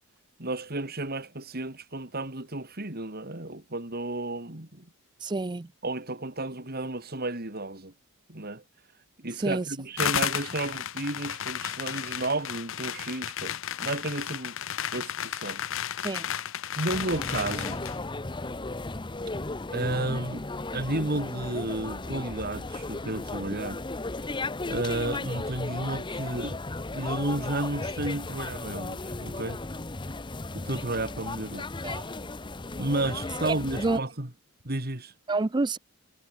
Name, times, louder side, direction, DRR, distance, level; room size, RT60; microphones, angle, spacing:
voice 1, 0.4-4.9 5.8-7.9 8.3-8.6 9.2-14.6 14.9-15.6 16.8-17.9 19.7-20.4 20.7-23.8 24.7-26.6 26.9-29.6 30.5-31.7 32.7-34.3 34.6-35.1, right 2 dB, 45° right, 2.9 m, -32 dB
voice 2, 5.2-5.7 9.4-9.6 16.0-16.3 31.8-32.1 33.4-34.0 35.3-35.8, right 3 dB, 20° right, 0.4 m, -28 dB
sound 1, 10.0-18.0, left 9 dB, 60° left, 0.7 m, -33 dB
sound 2, 16.9-34.0, left 2 dB, 20° left, 0.8 m, -35 dB
head